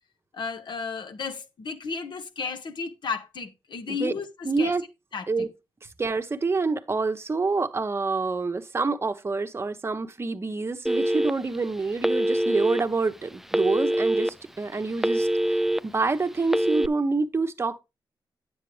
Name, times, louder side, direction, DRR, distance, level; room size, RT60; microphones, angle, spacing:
voice 1, 0.3-4.8 5.1-5.5, left 5 dB, 65° left, 1.6 m, -33 dB
voice 2, 4.4-4.8 5.3-5.5 6.0-17.8, right 3 dB, 30° right, 1.0 m, -27 dB
Telephone, 10.9-11.6 12.0-12.8 13.5-14.3 14.7-15.8 16.4-16.9, right 1 dB, 5° right, 0.4 m, -24 dB
9.7 x 7.9 x 3.3 m
cardioid pair, 75°, 8 cm